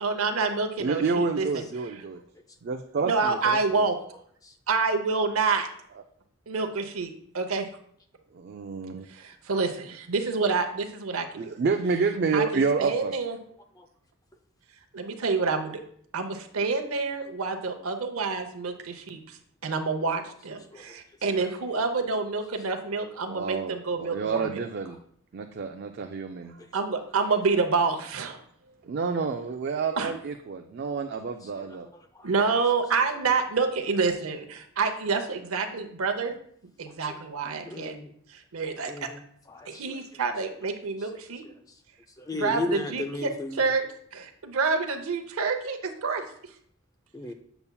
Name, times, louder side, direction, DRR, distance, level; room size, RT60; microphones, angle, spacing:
voice 1, 0.0-1.5 3.0-4.0 4.7-5.7 6.5-7.7 9.1-11.3 12.3-13.4 14.9-15.8 16.1-24.6 26.7-28.4 30.0-30.1 32.2-36.3 36.8-38.0 38.3-39.1 39.7-41.4 42.4-46.2, right 4 dB, 75° right, 6 dB, 0.7 m, -28 dB
voice 2, 0.8-2.2 2.6-3.8 8.3-9.1 11.4-13.1 23.3-25.0 25.3-26.5 28.7-31.9, right 4 dB, 50° right, 5 dB, 0.3 m, -29 dB
voice 3, 20.7-21.0 22.9-23.0 26.6-27.0 31.4-32.3 37.0-37.2 37.6-38.1 38.9-39.2 39.5-40.0 41.0-41.1 41.4-41.8 42.2-43.7 47.1-47.3, left 2 dB, 15° left, 6 dB, 0.4 m, -36 dB
6.9 x 6.8 x 2.3 m, 0.64 s
head